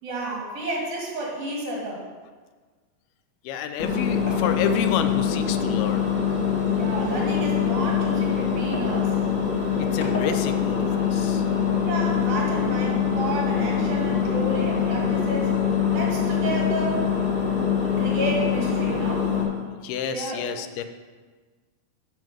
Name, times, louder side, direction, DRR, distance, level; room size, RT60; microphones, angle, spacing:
voice 1, 0.0-2.1 6.7-9.2 11.8-15.5 15.9-17.1 17.8-19.3 20.1-20.5, right 2 dB, 70° right, -2 dB, 4.0 m, -31 dB
voice 2, 3.4-6.1 9.8-11.5 19.8-20.8, left 7 dB, 90° left, 8 dB, 2.6 m, -29 dB
Engine, 3.8-19.4, left 7 dB, 45° left, 0.7 m, -24 dB
9.2 x 6.2 x 6.0 m, 1.4 s
omnidirectional pair, 4.3 m